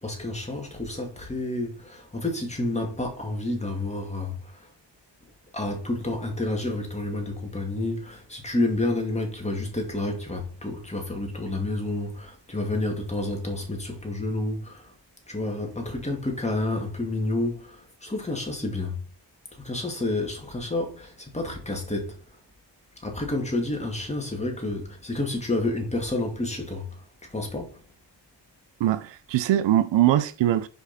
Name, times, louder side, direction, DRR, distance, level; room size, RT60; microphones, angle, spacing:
voice 1, 0.0-4.5 5.5-14.9 15.3-19.0 19.6-22.1 23.0-26.9 27.3-27.8, left 2 dB, 15° left, 2.2 m, -29 dB
voice 2, 28.8-30.7, right 13 dB, 80° right, 0.6 m, -22 dB
5.4 x 4.9 x 4.1 m
cardioid pair, 75°, 43 cm